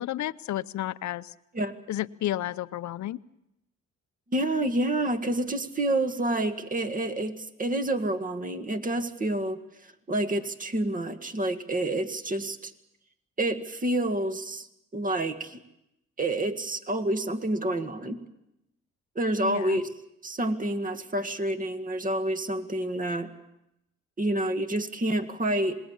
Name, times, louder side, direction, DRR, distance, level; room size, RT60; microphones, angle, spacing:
voice 1, 0.0-1.3 1.9-3.2 19.4-19.8, left 13 dB, 70° left, 14 dB, 0.8 m, -32 dB
voice 2, 4.3-12.7 13.4-14.7 14.9-15.6 16.2-18.2 19.2-19.9 20.2-23.3 24.2-25.8, right 1 dB, 25° right, 8 dB, 1.9 m, -28 dB
27.0 x 20.5 x 7.3 m, 0.86 s
cardioid pair, 90°, 30 cm